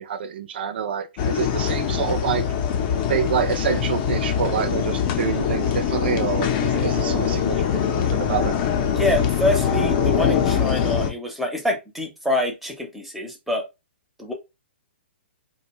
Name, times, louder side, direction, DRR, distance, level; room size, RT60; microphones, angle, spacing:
voice 1, 0.0-2.5 3.1-8.6, right 8 dB, 60° right, 0.4 m, -27 dB
sound 1, 1.2-11.1, left 8 dB, 35° left, 0.6 m, -23 dB
voice 2, 8.9-13.6 14.2-14.3, left 1 dB, ahead, 0.7 m, -26 dB
2.5 x 2.2 x 2.9 m
hypercardioid pair, 135°, 6 cm